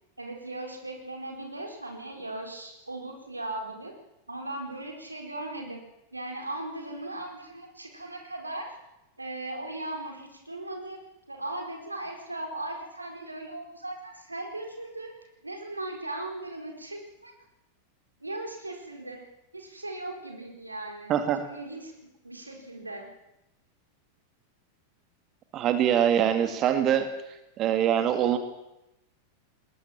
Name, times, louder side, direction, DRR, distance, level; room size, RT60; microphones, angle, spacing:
voice 1, 0.2-3.9 4.3-5.8 6.1-8.8 9.2-11.0 11.3-15.1 15.4-17.3 18.2-19.2 19.5-23.1, right 2 dB, 85° right, 3 dB, 4.6 m, -38 dB
voice 2, 21.1-21.4 25.5-27.1 27.6-28.4, right 9 dB, 35° right, 8 dB, 2.1 m, -23 dB
20.5 x 20.0 x 7.4 m, 0.92 s
figure-of-eight pair, 90°, 0 cm